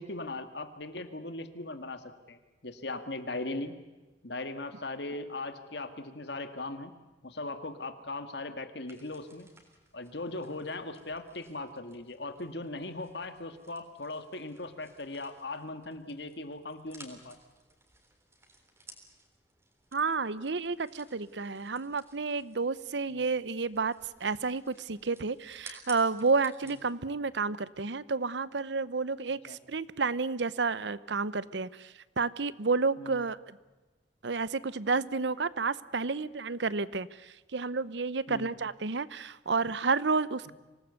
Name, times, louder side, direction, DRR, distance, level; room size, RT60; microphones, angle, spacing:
voice 1, 0.0-3.8 4.2-7.0 7.2-9.5 9.9-17.4 23.1-23.2 29.5-29.6 33.0-33.2 38.3-38.5 40.5-40.6, left 2 dB, 65° left, 9 dB, 2.0 m, -39 dB
sound 1, 8.9-26.9, right 2 dB, 15° right, 3.7 m, -57 dB
voice 2, 19.9-33.6 34.2-40.5, right 4 dB, 70° right, 18 dB, 0.8 m, -31 dB
25.5 x 18.5 x 8.2 m, 1.2 s
head